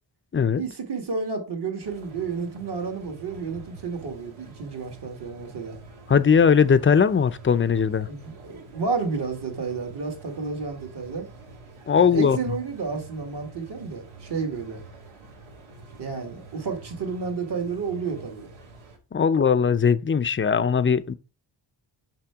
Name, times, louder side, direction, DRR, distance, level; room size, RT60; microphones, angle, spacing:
voice 1, 0.6-5.8 8.1-11.3 12.0-14.8 16.0-18.5, right 4 dB, 55° right, 2.2 m, -31 dB
sound 1, 1.8-19.0, right 3 dB, 90° right, 1.9 m, -47 dB
voice 2, 6.1-8.1 11.9-12.4 19.1-21.1, left 6 dB, 25° left, 0.5 m, -19 dB
5.9 x 5.8 x 3.5 m
cardioid pair, 80°, 47 cm